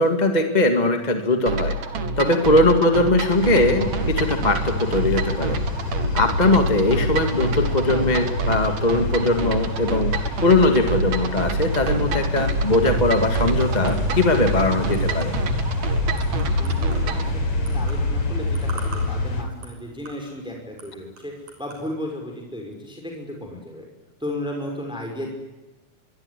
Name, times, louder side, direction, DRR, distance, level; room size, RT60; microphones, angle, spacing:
voice 1, 0.0-1.7 2.2-5.6 6.1-15.3, left 2 dB, 15° left, 5 dB, 1.8 m, -20 dB
sound 1, 1.5-17.3, right 2 dB, 65° right, 3.3 m, -27 dB
voice 2, 2.2-2.9 16.0-16.1 16.6-17.2 17.6-21.3 21.6-23.8 24.2-25.3, left 1 dB, ahead, 1 dB, 5.5 m, -34 dB
sound 2, 3.3-19.4, left 1 dB, 45° left, 4.9 m, -27 dB
sound 3, 12.4-21.9, right 4 dB, 85° right, 7.6 m, -46 dB
25.0 x 22.5 x 10.0 m, 1.1 s
omnidirectional pair, 3.5 m